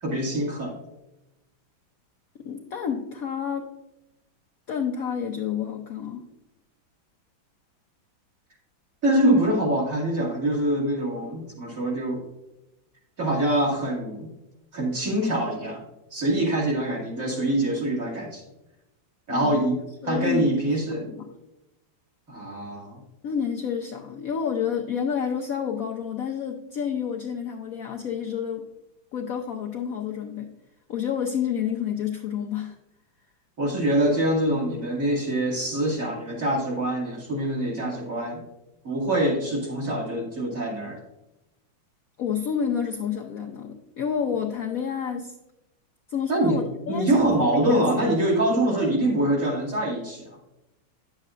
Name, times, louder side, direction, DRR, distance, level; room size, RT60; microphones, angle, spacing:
voice 1, 0.0-0.8 9.0-12.2 13.2-14.3 14.7-15.8 16.1-18.4 19.3-19.8 20.0-21.0 22.3-23.0 33.6-38.4 38.8-41.0 46.3-46.6 46.9-50.4, right 1 dB, 45° right, -3 dB, 2.5 m, -24 dB
voice 2, 2.4-3.7 4.7-6.2 19.3-19.7 20.0-20.6 21.1-21.3 23.2-28.7 29.1-30.5 30.9-32.8 42.2-45.3 46.1-47.3 47.7-47.8, left 7 dB, 65° left, 2 dB, 0.9 m, -29 dB
9.8 x 7.5 x 2.5 m, 0.94 s
omnidirectional pair, 2.1 m